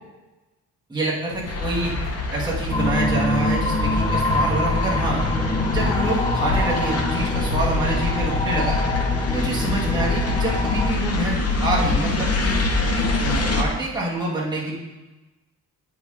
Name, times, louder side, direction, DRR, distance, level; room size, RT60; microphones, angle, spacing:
voice 1, 0.9-1.9 2.3-5.2 5.7-8.8 9.3-11.3 11.6-12.6 12.9-14.8, right 2 dB, 10° right, -6 dB, 1.6 m, -26 dB
sound 1, 1.3-7.3, left 3 dB, 65° left, 2.1 m, -37 dB
sound 2, 1.5-13.6, left 2 dB, 40° left, 0.8 m, -24 dB
sound 3, 2.7-10.9, left 2 dB, 15° left, 0.4 m, -25 dB
8.1 x 5.4 x 4.8 m, 1.1 s
wide cardioid pair, 170°, 39 cm